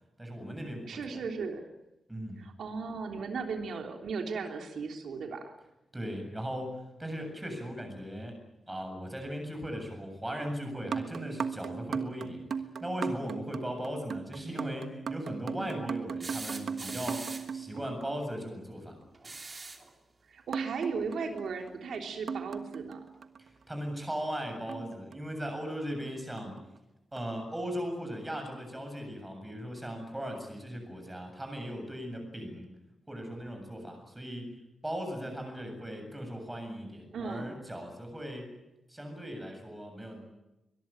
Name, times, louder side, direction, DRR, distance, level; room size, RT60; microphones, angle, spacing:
voice 1, 0.2-1.2 2.1-2.4 5.9-8.4 8.7-12.4 12.8-19.0 23.4-26.6 27.1-32.7 33.1-34.5 34.8-38.5 38.9-40.2, equal, 10° right, 4 dB, 7.6 m, -38 dB
voice 2, 0.9-1.7 2.4-5.5 15.6-15.8 20.3-23.0 37.1-37.6, right 5 dB, 85° right, 3 dB, 3.3 m, -36 dB
sound 1, 10.8-18.5 20.5-23.5 24.7-25.7 26.4-26.7 27.2-27.3, right 6 dB, 65° right, 1.4 m, -38 dB
sound 2, 16.2-17.6 19.1-19.9 21.6-21.7 23.1-23.2, right 3 dB, 25° right, 2.8 m, -42 dB
23.5 x 22.0 x 9.0 m, 0.95 s
wide cardioid pair, 160°, 0 cm